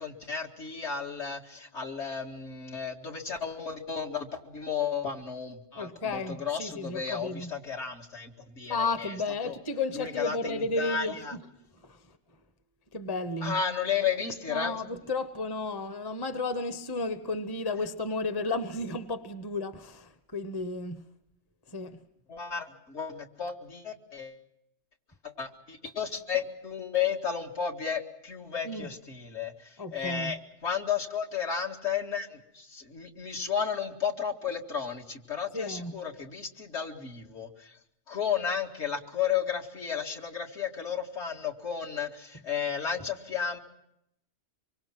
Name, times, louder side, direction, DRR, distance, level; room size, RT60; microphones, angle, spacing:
voice 1, 0.0-9.1 9.4-9.6 9.9-11.3 13.4-14.8 22.3-24.4 25.2-37.8 38.1-43.6, left 7 dB, 65° left, 2.4 m, -33 dB
voice 2, 5.7-7.5 8.7-11.5 11.8-12.2 12.9-13.6 14.5-21.0 21.7-22.0 28.6-28.9 29.8-30.4 35.5-36.0, left 3 dB, 20° left, 0.9 m, -33 dB
25.0 x 24.5 x 6.0 m
omnidirectional pair, 1.3 m